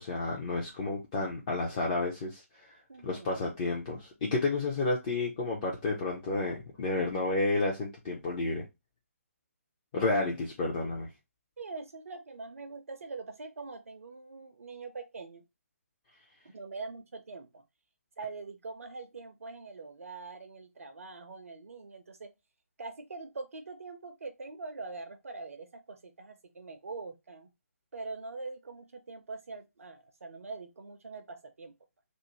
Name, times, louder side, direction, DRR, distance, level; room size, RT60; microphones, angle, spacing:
voice 1, 0.0-2.4 3.0-8.7 9.9-11.1, left 3 dB, 25° left, 0.5 m, -31 dB
voice 2, 2.9-3.5 11.6-15.4 16.5-17.6 18.2-22.3 22.8-27.5 27.9-31.7, right 3 dB, 65° right, 0.5 m, -43 dB
2.5 x 2.0 x 3.0 m
figure-of-eight pair, 145°, 8 cm